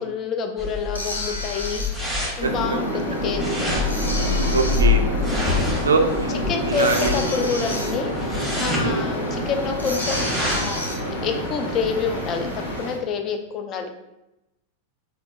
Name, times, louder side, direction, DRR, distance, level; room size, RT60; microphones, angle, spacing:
voice 1, 0.0-1.8 2.4-3.7 5.3-5.7 6.5-8.3 8.6-10.8 11.2-13.9, left 5 dB, 30° left, 5 dB, 0.4 m, -28 dB
sound 1, 0.6-10.8, left 3 dB, ahead, 1.0 m, -26 dB
sound 2, 0.9-13.0, left 1 dB, 80° left, 0.5 m, -35 dB
sound 3, 2.4-12.9, equal, 55° left, 1.1 m, -28 dB
voice 2, 4.4-5.0 5.9-7.2 8.8-9.1, right 4 dB, 75° right, 5 dB, 0.3 m, -23 dB
3.4 x 2.7 x 2.3 m, 0.91 s
figure-of-eight pair, 90°, 0 cm